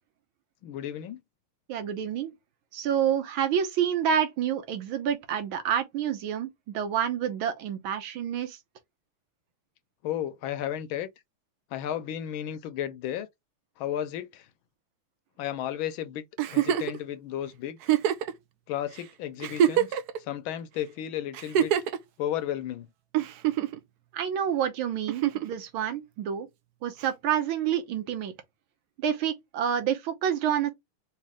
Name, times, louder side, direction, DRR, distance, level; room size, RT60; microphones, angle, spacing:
voice 1, 0.6-1.2 10.0-11.1 11.7-13.3 13.8-14.5 15.4-16.2 16.5-17.8 18.7-21.7 22.2-22.9, left 11 dB, 75° left, 1.4 m, -33 dB
voice 2, 1.7-2.3 2.7-8.6 24.1-26.5 26.8-28.3 29.0-30.7, right 9 dB, 75° right, 1.6 m, -28 dB
Giggle, 16.4-17.0 17.8-18.3 19.0-19.1 19.4-20.2 21.3-22.0 23.1-23.8 25.1-25.5 27.0-27.1, right 10 dB, 90° right, 0.8 m, -24 dB
4.1 x 2.9 x 3.5 m
omnidirectional pair, 2.4 m